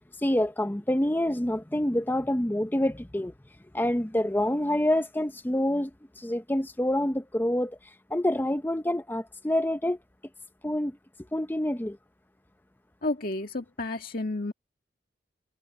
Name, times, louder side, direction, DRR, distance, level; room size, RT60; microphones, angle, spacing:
voice 1, 0.2-3.3 3.7-5.9 6.2-7.8 8.1-10.0 10.6-10.9 11.3-12.0, left 1 dB, 10° left, 0.6 m, -27 dB
voice 2, 13.0-14.5, left 2 dB, 55° left, 2.1 m, -31 dB
head